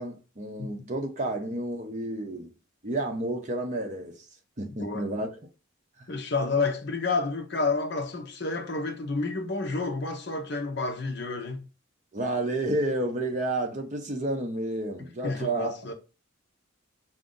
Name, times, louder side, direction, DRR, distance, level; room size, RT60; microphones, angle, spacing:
voice 1, 0.0-2.5 2.8-4.2 4.6-5.3 12.1-15.7, right 2 dB, 35° right, 0.7 m, -30 dB
voice 2, 4.8-5.1 6.1-11.7 15.2-15.9, left 3 dB, 55° left, 0.8 m, -30 dB
4.9 x 2.6 x 3.7 m
head